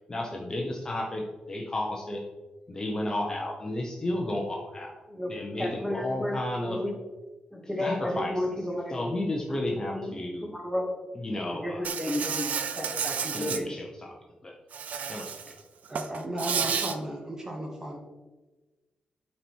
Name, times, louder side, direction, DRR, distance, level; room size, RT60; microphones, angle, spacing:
voice 1, 0.1-2.2 2.7-4.9 5.3-6.8 7.8-8.3 8.9-10.5 11.2-11.9 13.3-14.1 14.4-14.5 15.1-15.5, left 1 dB, 25° left, 0 dB, 0.9 m, -32 dB
voice 2, 5.1-6.9 7.5-9.1 9.5-10.1 10.5-10.9 11.3-13.7, left 1 dB, ahead, 2 dB, 1.3 m, -33 dB
Insect, 11.8-13.6 14.7-15.5 15.9-16.9, right 7 dB, 70° right, 0.5 m, -31 dB
voice 3, 15.9-18.0, right 1 dB, 20° right, 1 dB, 1.0 m, -35 dB
8.6 x 4.4 x 4.6 m, 1.2 s
wide cardioid pair, 130°, 3 cm